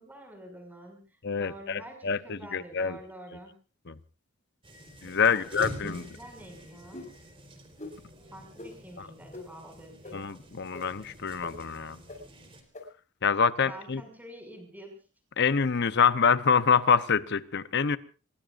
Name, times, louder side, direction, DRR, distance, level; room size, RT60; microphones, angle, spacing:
voice 1, 0.0-3.5 5.2-7.1 8.3-10.3 13.6-14.9, right 1 dB, 10° right, 4 dB, 6.3 m, -47 dB
voice 2, 1.2-3.0 3.9-4.0 5.0-6.0 9.0-9.1 10.1-12.0 13.2-14.0 15.4-18.0, left 6 dB, 55° left, 14 dB, 0.8 m, -26 dB
sound 1, 4.6-12.6, equal, 25° right, 4.0 m, -47 dB
sound 2, 5.8-6.2 6.9-7.1 7.8-7.9 8.6-8.7 9.3-9.4 10.0-10.1 10.7-10.8 11.4-11.5 12.1-12.2 12.7-12.8, left 2 dB, 35° left, 6.1 m, -41 dB
26.0 x 21.5 x 2.6 m, 0.35 s
head